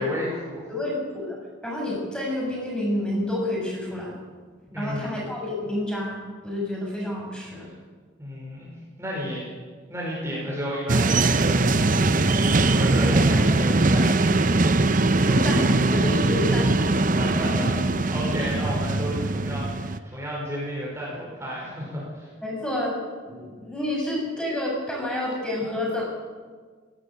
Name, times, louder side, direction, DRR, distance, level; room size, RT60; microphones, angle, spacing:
voice 1, 0.0-0.6 4.7-5.3 8.2-8.7 9.0-9.4 9.9-11.8 12.2-14.4 17.1-22.3, equal, 15° right, -6 dB, 5.3 m, -32 dB
voice 2, 0.7-1.4 1.6-4.1 4.8-7.7 15.3-16.9 17.2-17.6 18.4-18.5 22.4-23.0 23.2-26.0, left 1 dB, 5° left, -2 dB, 6.6 m, -29 dB
sound 1, 10.9-20.0, right 2 dB, 40° right, 0.8 m, -21 dB
18.5 x 17.0 x 8.8 m, 1.5 s
head